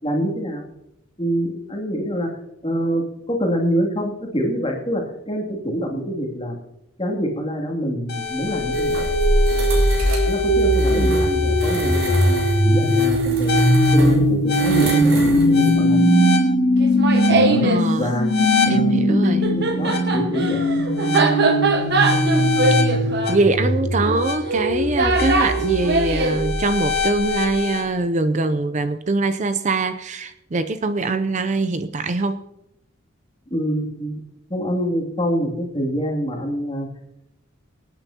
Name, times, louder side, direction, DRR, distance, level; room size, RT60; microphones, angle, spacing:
voice 1, 0.0-0.7 1.2-2.3 2.6-6.6 7.0-9.0 10.3-13.5 13.9-16.0 17.3-17.7 18.0-18.3 18.6-19.0 19.5-20.6 33.5-34.2 34.5-36.9, equal, 25° left, 1 dB, 2.5 m, -25 dB
sound 1, 8.1-27.8, equal, 55° left, 2.2 m, -19 dB
sound 2, 8.7-15.8, right 2 dB, 80° right, 3.8 m, -32 dB
voice 2, 10.9-11.3 17.6-18.1 18.7-19.5 22.3-22.5 23.3-32.4, right 3 dB, 35° right, 10 dB, 0.5 m, -23 dB
Laughter, 16.8-17.8 19.1-26.4, right 3 dB, 55° right, 1.3 m, -22 dB
25.0 x 8.9 x 2.8 m, 0.85 s
head